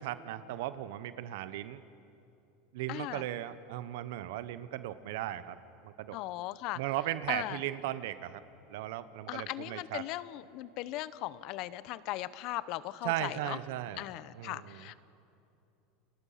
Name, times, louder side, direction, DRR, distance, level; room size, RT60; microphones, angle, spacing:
voice 1, 0.0-1.8 2.7-5.6 5.8-6.2 6.7-8.4 8.7-10.0 13.0-14.0 14.3-14.9, right 14 dB, 70° right, 14 dB, 1.0 m, -37 dB
voice 2, 2.9-3.2 6.1-6.8 7.3-7.6 9.3-13.6 14.0-15.0, left 16 dB, 55° left, 16 dB, 0.9 m, -38 dB
30.0 x 22.0 x 5.8 m, 2.7 s
supercardioid pair, 110°, 0 cm